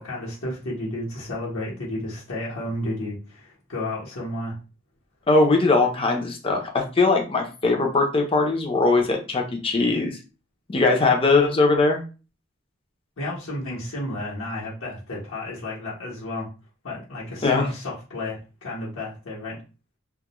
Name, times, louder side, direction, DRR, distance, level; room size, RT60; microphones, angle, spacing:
voice 1, 0.0-4.6 13.2-16.5 16.8-19.6, left 1 dB, 75° left, -5 dB, 1.0 m, -32 dB
voice 2, 5.3-10.2 10.7-12.0 17.4-17.7, left 3 dB, 25° left, 2 dB, 0.5 m, -20 dB
2.3 x 2.1 x 2.9 m, 0.33 s
head